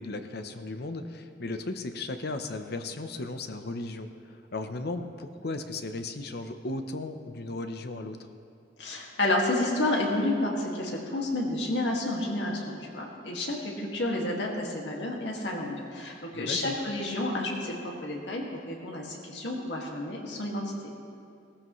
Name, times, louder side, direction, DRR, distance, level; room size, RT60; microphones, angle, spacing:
voice 1, 0.0-8.2 16.3-16.8, left 2 dB, 65° left, 8 dB, 0.8 m, -36 dB
voice 2, 8.8-20.6, left 1 dB, 80° left, -1 dB, 2.1 m, -30 dB
18.0 x 14.5 x 3.2 m, 2.4 s
head